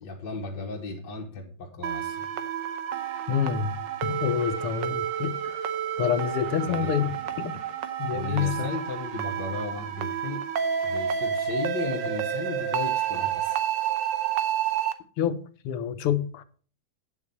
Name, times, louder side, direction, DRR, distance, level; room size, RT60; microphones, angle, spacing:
voice 1, 0.0-2.3 6.7-7.4 8.1-10.5 10.8-13.6, left 3 dB, 55° left, 1.6 m, -35 dB
sound 1, 1.8-14.9, right 9 dB, 65° right, 1.4 m, -30 dB
voice 2, 3.3-5.6 6.0-7.1 7.4-7.5 8.0-8.7 15.2-15.4 15.7-16.4, left 9 dB, 85° left, 1.8 m, -27 dB
9.2 x 7.1 x 5.4 m
omnidirectional pair, 2.4 m